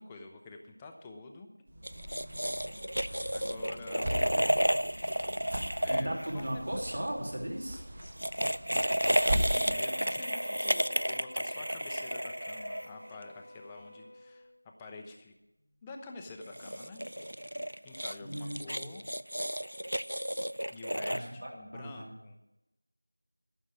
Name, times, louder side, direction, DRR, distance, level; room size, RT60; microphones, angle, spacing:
voice 1, 0.0-1.5 3.3-4.3 5.8-6.6 9.2-14.5 14.8-15.3 15.8-17.0 17.8-19.0 20.7-22.4, left 3 dB, 5° left, 2 dB, 0.5 m, -48 dB
sound 1, 1.7-9.7, equal, 25° right, 1.4 m, -39 dB
sound 2, 1.8-7.0 8.0-13.2 16.4-21.2, equal, 80° right, 0.5 m, -32 dB
voice 2, 4.0-4.6 5.9-7.8 18.2-18.9 21.1-22.1, right 1 dB, 45° right, -1 dB, 3.2 m, -37 dB
Bowed string instrument, 9.6-14.8, left 1 dB, 45° left, 1.0 m, -50 dB
13.5 x 6.2 x 9.7 m, 0.91 s
figure-of-eight pair, 175°, 0 cm